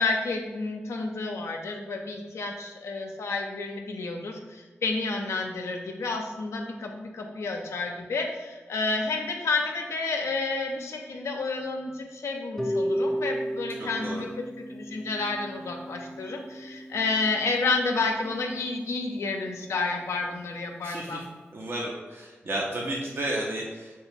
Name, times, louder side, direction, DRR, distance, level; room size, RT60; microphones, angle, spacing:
voice 1, 0.0-14.3 14.7-21.3, left 3 dB, 80° left, 2 dB, 0.4 m, -30 dB
Harp, 12.6-18.6, equal, ahead, 0.4 m, -34 dB
voice 2, 13.8-14.3 20.8-21.2 21.5-23.9, right 1 dB, 55° right, -3 dB, 0.5 m, -32 dB
2.9 x 2.3 x 4.2 m, 1.3 s
cardioid pair, 45°, 5 cm